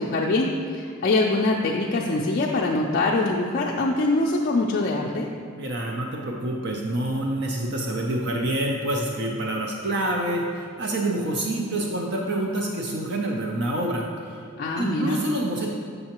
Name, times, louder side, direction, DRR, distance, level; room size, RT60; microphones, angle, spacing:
voice 1, 0.0-5.3 14.6-15.2, left 2 dB, 45° left, -2 dB, 0.3 m, -23 dB
voice 2, 5.6-14.4 14.8-15.7, right 1 dB, 55° right, -1 dB, 0.5 m, -27 dB
6.6 x 5.4 x 2.9 m, 2.1 s
head